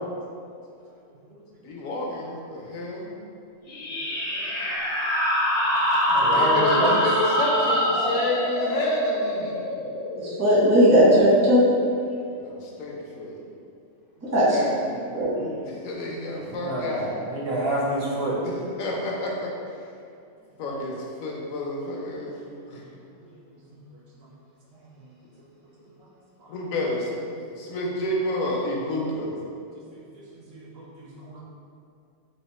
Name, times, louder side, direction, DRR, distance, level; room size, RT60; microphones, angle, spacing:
voice 1, 1.6-3.1 6.2-9.6 12.1-13.4 14.5-15.1 15.6-17.3 18.4-19.5 20.6-22.3 22.7-22.8 26.5-29.4, left 1 dB, 75° left, -2 dB, 1.0 m, -29 dB
sound 1, 3.7-10.9, equal, 55° left, 0.4 m, -25 dB
voice 2, 6.1-7.0 16.4-18.4 22.7-22.8 23.2-23.3 25.0-25.1 26.4-26.5 29.9-30.0 30.3-31.4, right 1 dB, 60° right, -4 dB, 0.6 m, -29 dB
voice 3, 10.2-11.6 14.3-14.6 15.1-15.3, equal, 20° right, -8 dB, 0.4 m, -17 dB
3.6 x 2.1 x 4.0 m, 2.4 s
omnidirectional pair, 1.6 m